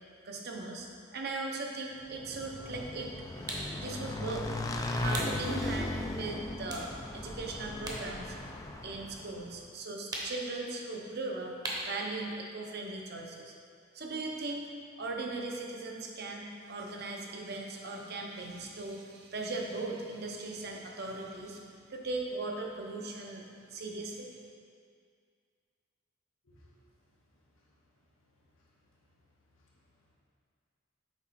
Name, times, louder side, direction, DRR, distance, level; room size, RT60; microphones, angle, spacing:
voice 1, 0.2-3.1 3.7-8.3 8.8-11.5 11.8-13.5 13.9-14.6 15.0-24.3, right 3 dB, 50° right, 1 dB, 0.7 m, -39 dB
Motorcycle / Engine, 2.1-9.5, left 2 dB, 15° left, 0.3 m, -37 dB
sound 1, 3.5-3.7 5.1-5.4 5.9-6.0 6.6-8.1 8.4-9.5 10.1-10.5 11.6-12.0, right 1 dB, 20° right, 0.9 m, -38 dB
voice 2, 26.4-26.7 27.3-27.7 28.2-29.2 29.5-30.1, left 1 dB, 90° left, -5 dB, 1.5 m, -67 dB
7.1 x 4.8 x 4.1 m, 2.2 s
head